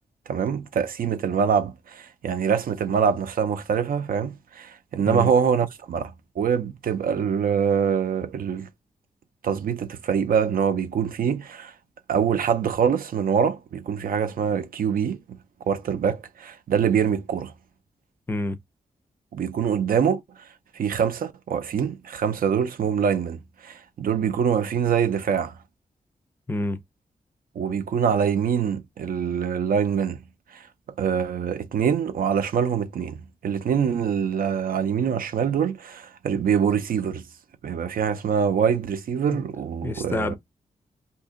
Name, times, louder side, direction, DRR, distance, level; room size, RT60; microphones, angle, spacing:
voice 1, 0.3-8.7 9.4-11.7 12.1-15.2 15.7-17.5 19.3-20.2 20.8-25.5 27.6-30.2 30.5-30.6 31.0-33.2 33.4-37.2 37.6-40.4, right 7 dB, 85° right, 0.5 m, -24 dB
voice 2, 18.3-18.6 26.5-26.8 39.3-39.4 39.8-40.4, left 2 dB, 15° left, 0.4 m, -28 dB
2.8 x 2.6 x 3.6 m
wide cardioid pair, 150°, 14 cm